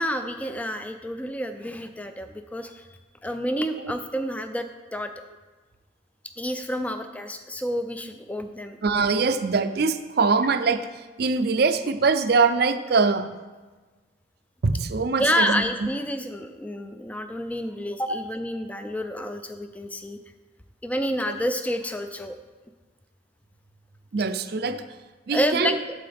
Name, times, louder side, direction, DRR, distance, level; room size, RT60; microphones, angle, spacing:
voice 1, 0.0-2.9 3.2-5.1 6.4-8.8 15.2-20.2 20.8-22.4 25.3-25.8, equal, 5° left, 8 dB, 0.4 m, -29 dB
voice 2, 8.8-10.8 11.2-13.3 14.6-15.9 21.3-21.4 24.1-24.8 25.3-25.7, right 4 dB, 50° right, 10 dB, 0.4 m, -23 dB
9.1 x 7.6 x 3.5 m, 1.3 s
head